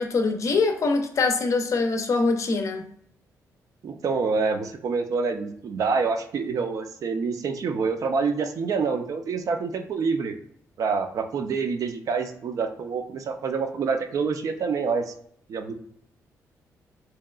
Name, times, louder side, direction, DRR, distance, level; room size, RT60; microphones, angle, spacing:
voice 1, 0.0-2.9, left 3 dB, 55° left, 5 dB, 0.5 m, -23 dB
voice 2, 3.8-10.3 10.8-15.1 15.5-15.7, right 5 dB, 60° right, 6 dB, 0.4 m, -27 dB
2.8 x 2.2 x 2.3 m, 0.65 s
cardioid pair, 80°, 6 cm